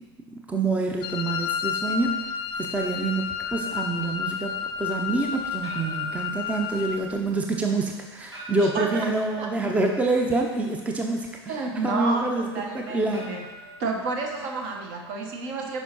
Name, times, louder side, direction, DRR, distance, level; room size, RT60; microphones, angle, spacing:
voice 1, 0.3-2.3 2.6-13.3, right 3 dB, 10° right, 2 dB, 0.6 m, -27 dB
Wind instrument woodwind instrument, 1.0-7.0, left 7 dB, 35° left, 0.5 m, -31 dB
sound 1, 3.4-14.7, equal, 85° right, 1.4 m, -45 dB
voice 2, 8.6-9.5 11.5-13.4 13.8-15.8, right 3 dB, 50° right, 1 dB, 1.2 m, -30 dB
9.9 x 5.4 x 3.0 m, 1.3 s
figure-of-eight pair, 85°, 14 cm